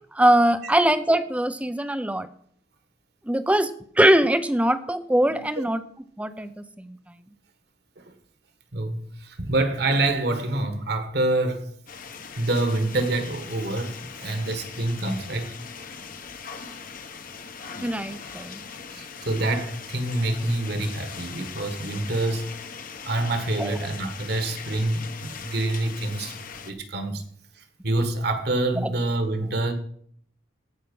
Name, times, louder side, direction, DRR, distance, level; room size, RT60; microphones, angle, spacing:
voice 1, 0.1-2.3 3.3-5.8 6.2-7.0 17.8-18.6 23.6-23.8, right 1 dB, 5° right, 0.5 m, -22 dB
voice 2, 8.7-11.7 12.4-15.5 18.9-22.6 23.0-26.4 26.6-27.2 27.8-29.7, right 2 dB, 55° right, 1.6 m, -26 dB
sound 1, 11.9-26.7, left 6 dB, 45° left, 1.0 m, -40 dB
16.5 x 5.7 x 5.4 m
head